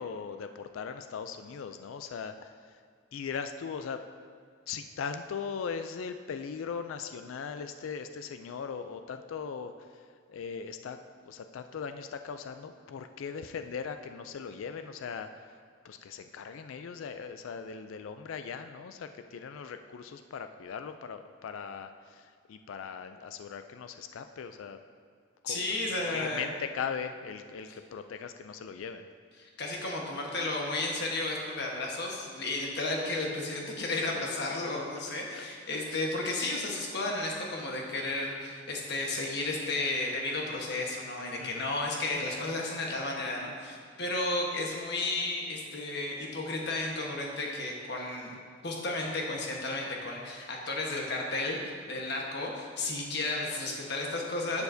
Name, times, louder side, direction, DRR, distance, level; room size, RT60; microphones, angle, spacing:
voice 1, 0.0-2.5 3.1-4.0 4.7-11.0 11.3-15.3 15.8-24.8 25.4-25.8 26.1-29.1 35.3-35.5 35.9-36.0 41.4-41.7, left 6 dB, 75° left, 8 dB, 0.4 m, -39 dB
voice 2, 25.5-26.4 29.4-48.4 48.6-54.6, left 2 dB, 55° left, -1 dB, 1.2 m, -33 dB
11.0 x 7.0 x 2.7 m, 2.1 s
head